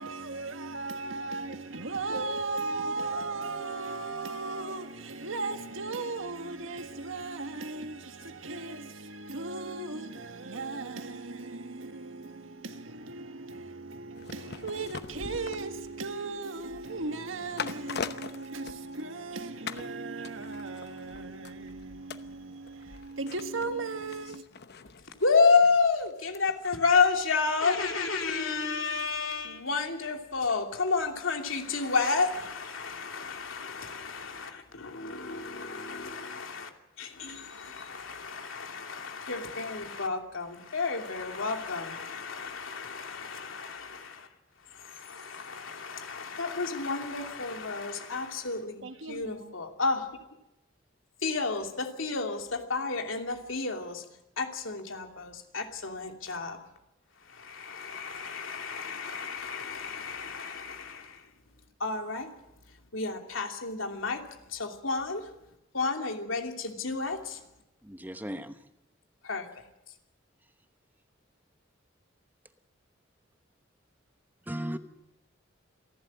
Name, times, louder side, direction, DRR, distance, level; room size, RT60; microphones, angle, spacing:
voice 1, 0.0-24.4 48.8-49.5, right 3 dB, 85° right, 1.7 m, -37 dB
sound 1, 14.1-19.3 19.7-19.9 20.2-29.4 29.7-29.8, left 5 dB, 55° left, 0.9 m, -44 dB
voice 2, 25.2-36.7 37.0-44.3 44.7-50.1 51.2-54.0 54.4-56.6 57.2-61.3 61.8-62.3 62.9-65.3 65.7-67.4 69.2-69.6, left 4 dB, 85° left, 2.8 m, -31 dB
voice 3, 67.8-68.6 74.4-74.8, equal, 10° right, 1.0 m, -36 dB
28.0 x 12.0 x 8.6 m
head